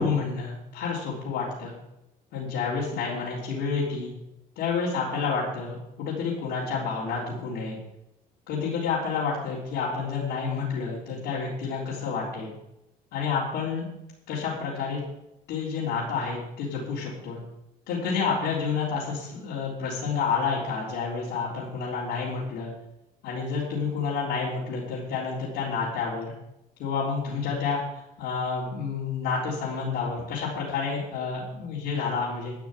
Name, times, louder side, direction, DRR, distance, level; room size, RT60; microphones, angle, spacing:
voice 1, 0.0-1.8 2.3-4.1 4.6-7.8 8.5-12.5 13.1-13.8 14.3-15.0 15.5-17.4 17.9-22.7 23.2-26.3 26.8-27.8 28.2-32.5, left 5 dB, 90° left, -8 dB, 3.9 m, -29 dB
12.5 x 5.7 x 9.3 m, 0.86 s
cardioid pair, 110°, 17 cm